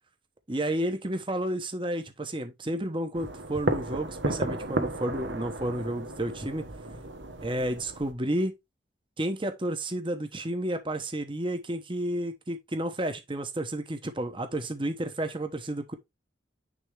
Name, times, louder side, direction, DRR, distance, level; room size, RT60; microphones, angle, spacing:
voice 1, 0.5-6.6 7.4-8.5 9.2-15.9, right 1 dB, 25° right, 1.0 m, -31 dB
sound 1, 3.1-8.1, right 2 dB, 90° right, 1.2 m, -33 dB
9.7 x 3.4 x 3.4 m
head